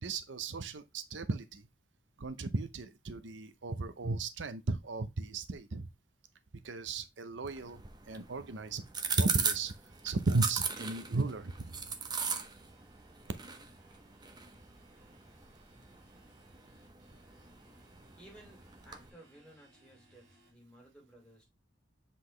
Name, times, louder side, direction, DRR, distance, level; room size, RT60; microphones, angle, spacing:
voice 1, 0.0-1.7 2.2-5.9 6.6-7.8 8.1-8.8 9.2-9.7 10.0-11.7, right 3 dB, 85° right, 0.7 m, -35 dB
sound 1, 7.4-19.1, right 6 dB, 20° right, 0.8 m, -39 dB
sound 2, 9.9-20.5, right 1 dB, 50° right, 3.0 m, -65 dB
voice 2, 18.2-21.5, right 1 dB, 5° left, 2.6 m, -57 dB
7.6 x 4.2 x 3.2 m
head